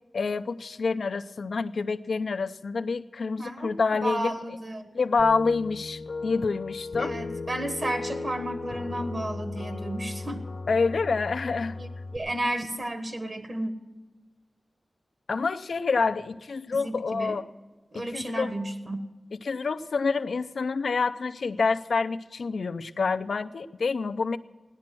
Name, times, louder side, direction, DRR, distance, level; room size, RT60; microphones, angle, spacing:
voice 1, 0.1-4.4 4.9-7.2 10.7-11.8 15.3-17.5 17.9-18.5 19.4-24.4, left 4 dB, 80° left, 10 dB, 0.5 m, -27 dB
voice 2, 3.4-3.7 4.0-5.0 7.0-10.4 11.8-13.7 16.7-17.3 17.9-19.0, right 1 dB, 45° right, 8 dB, 1.3 m, -32 dB
sound 1, 5.2-12.2, left 3 dB, 60° left, 0.9 m, -36 dB
16.0 x 10.5 x 6.1 m, 1.2 s
wide cardioid pair, 110°, 0 cm